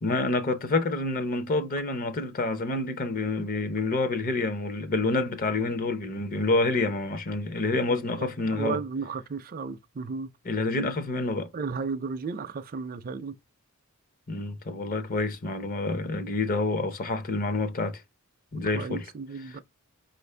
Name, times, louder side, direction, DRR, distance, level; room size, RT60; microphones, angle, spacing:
voice 1, 0.0-8.8 10.5-11.5 14.3-18.0 18.5-19.1 19.5-19.6, left 2 dB, 40° left, 0.6 m, -28 dB
voice 2, 7.7-10.3 11.5-13.3 18.7-19.6, right 5 dB, 40° right, 0.4 m, -34 dB
4.9 x 2.5 x 3.2 m
head